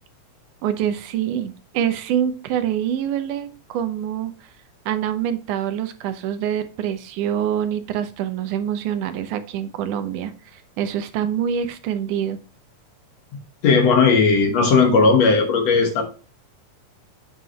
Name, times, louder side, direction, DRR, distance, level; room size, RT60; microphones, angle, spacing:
voice 1, 0.6-4.5 4.9-12.4, right 9 dB, 85° right, 2.3 m, -25 dB
voice 2, 13.6-16.0, left 4 dB, 65° left, 2.4 m, -16 dB
8.0 x 5.6 x 3.1 m
omnidirectional pair, 3.5 m